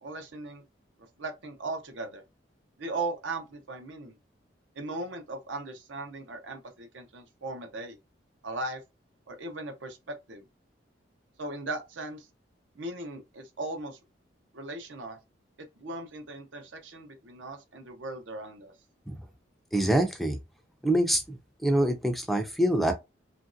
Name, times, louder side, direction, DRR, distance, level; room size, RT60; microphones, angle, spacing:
voice 1, 0.0-0.6 1.2-2.2 2.8-4.2 4.7-8.0 8.4-8.8 9.3-10.5 11.4-12.3 12.8-14.0 14.5-15.2 15.6-18.7, right 2 dB, 80° right, 0.7 m, -38 dB
voice 2, 19.7-20.4 20.8-22.9, right 1 dB, ahead, 0.4 m, -25 dB
3.0 x 2.5 x 2.5 m
head